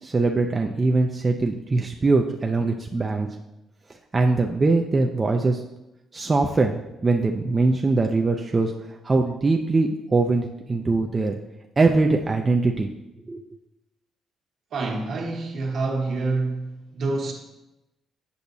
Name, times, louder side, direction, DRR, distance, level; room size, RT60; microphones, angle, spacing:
voice 1, 0.0-3.3 4.1-5.6 6.1-11.4 11.8-12.9 13.3-13.4, right 3 dB, 30° right, 2 dB, 0.5 m, -22 dB
voice 2, 14.7-17.3, right 3 dB, 65° right, 1 dB, 1.3 m, -27 dB
8.3 x 5.8 x 2.7 m, 0.94 s
cardioid pair, 90°, 0 cm